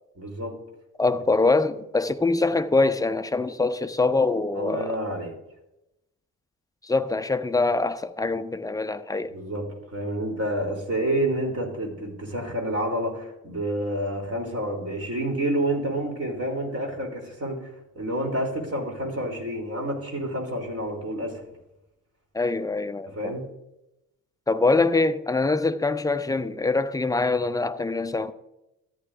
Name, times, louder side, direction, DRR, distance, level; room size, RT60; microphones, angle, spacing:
voice 1, 0.2-0.6 4.5-5.3 9.3-21.4 23.1-23.4, right 1 dB, 35° right, 3.2 m, -29 dB
voice 2, 1.0-5.0 6.8-9.3 22.3-23.4 24.5-28.3, left 3 dB, 10° left, 0.6 m, -24 dB
14.0 x 9.2 x 2.5 m
figure-of-eight pair, 40°, 42 cm